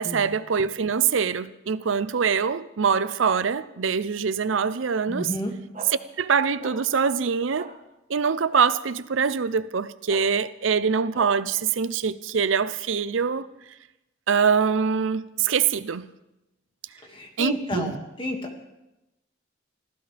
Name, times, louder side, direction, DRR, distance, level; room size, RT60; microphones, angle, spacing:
voice 1, 0.0-5.3 5.9-7.7 8.1-13.5 14.3-16.1 17.4-18.0, right 6 dB, 80° right, 0.6 m, -24 dB
voice 2, 5.1-5.5 17.1-18.4, left 1 dB, 25° left, 2.1 m, -31 dB
sound 1, 5.7-5.9 6.6-6.8 7.6-7.7 8.5-8.6 10.1-10.2 11.1-11.3, right 3 dB, 35° right, 1.8 m, -38 dB
25.5 x 15.5 x 3.4 m
head